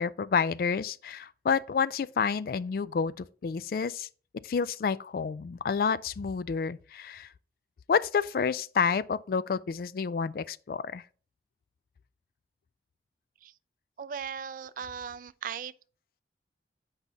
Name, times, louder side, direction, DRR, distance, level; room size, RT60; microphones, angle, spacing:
voice 1, 0.0-4.1 4.4-7.3 7.9-11.0, left 6 dB, 55° left, 0.3 m, -29 dB
voice 2, 14.0-15.7, right 7 dB, 50° right, 0.3 m, -38 dB
8.1 x 5.2 x 2.8 m
head